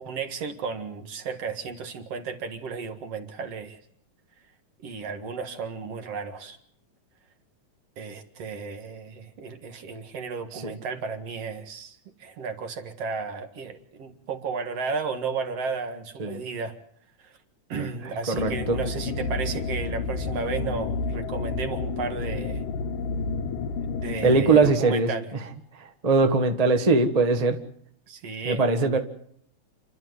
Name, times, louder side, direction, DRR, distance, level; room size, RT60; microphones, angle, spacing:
voice 1, 0.0-3.8 4.8-6.6 8.0-16.8 17.2-17.3 17.7-22.6 24.0-25.3 28.1-28.7, right 5 dB, 55° right, 6 dB, 2.6 m, -33 dB
voice 2, 18.3-18.8 24.2-25.1 26.0-27.6 28.4-29.0, right 3 dB, 25° right, 6 dB, 0.7 m, -21 dB
sound 1, 18.4-24.7, left 4 dB, 85° left, 2.7 m, -30 dB
28.5 x 12.0 x 9.6 m, 0.66 s
omnidirectional pair, 3.6 m